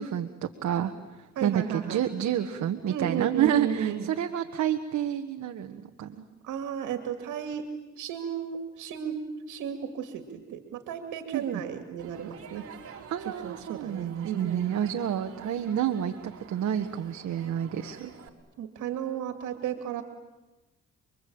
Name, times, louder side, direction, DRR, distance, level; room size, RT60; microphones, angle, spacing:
voice 1, 0.0-6.3 11.3-11.4 13.1-18.1, right 9 dB, 65° right, 6 dB, 1.6 m, -29 dB
voice 2, 1.4-2.0 2.9-4.1 6.4-7.7 8.0-12.6 13.2-14.8 18.6-20.0, right 8 dB, 85° right, 7 dB, 2.4 m, -34 dB
Crowd, 12.0-18.3, right 6 dB, 50° right, 3.8 m, -48 dB
29.5 x 22.5 x 8.8 m, 1.1 s
cardioid pair, 90°, 30 cm